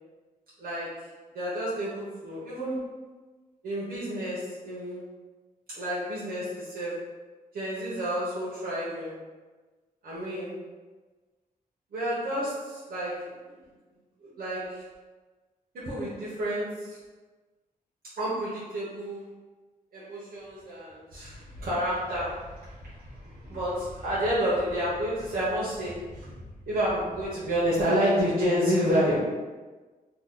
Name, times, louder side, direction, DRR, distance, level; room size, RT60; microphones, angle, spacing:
voice 1, 0.6-1.0 1.3-2.9 3.6-5.0 5.7-7.1 7.5-9.2 10.0-10.6 11.9-13.4 14.2-14.8 15.7-17.0 18.2-19.3 19.9-29.2, equal, 75° right, -9 dB, 0.9 m, -30 dB
3.0 x 2.2 x 3.7 m, 1.3 s
wide cardioid pair, 110°, 15 cm